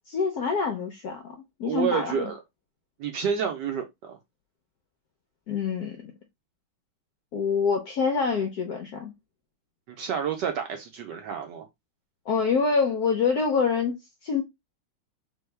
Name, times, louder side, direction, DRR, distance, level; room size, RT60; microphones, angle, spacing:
voice 1, 0.1-2.3 5.5-6.1 7.3-9.1 12.3-14.4, left 5 dB, 75° left, 0.9 m, -26 dB
voice 2, 1.6-2.4 3.0-4.2 9.9-11.7, right 7 dB, 75° right, 1.0 m, -29 dB
3.5 x 3.0 x 3.2 m
omnidirectional pair, 2.3 m